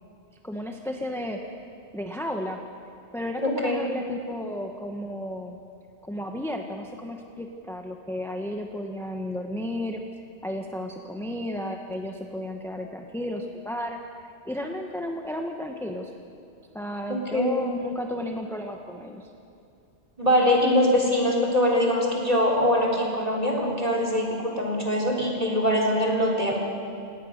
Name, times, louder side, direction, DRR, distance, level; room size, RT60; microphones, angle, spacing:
voice 1, 0.4-1.6 1.9-2.6 3.1-5.6 6.0-10.0 10.4-14.0 14.4-16.1 16.7-19.3, left 1 dB, ahead, 2 dB, 1.1 m, -33 dB
voice 2, 3.4-3.9 17.1-17.7 20.2-26.7, left 1 dB, 35° right, -1 dB, 3.9 m, -23 dB
28.5 x 17.5 x 6.6 m, 2.5 s
omnidirectional pair, 1.1 m